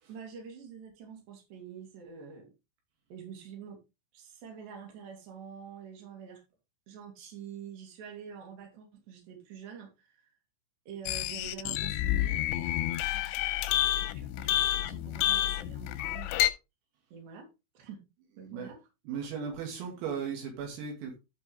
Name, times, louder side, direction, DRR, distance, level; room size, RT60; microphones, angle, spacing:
voice 1, 0.1-2.5 3.1-3.8 4.1-6.4 6.9-10.3 10.9-13.3 14.0-16.4 17.1-17.5 17.7-18.0 18.4-18.8, right 7 dB, 55° right, 1 dB, 4.9 m, -46 dB
sound 1, 11.1-16.5, left 13 dB, 85° left, 2.9 m, -29 dB
voice 2, 18.4-18.8 19.1-21.2, right 6 dB, 80° right, 1 dB, 5.4 m, -37 dB
14.0 x 5.4 x 3.5 m, 0.27 s
omnidirectional pair, 6.0 m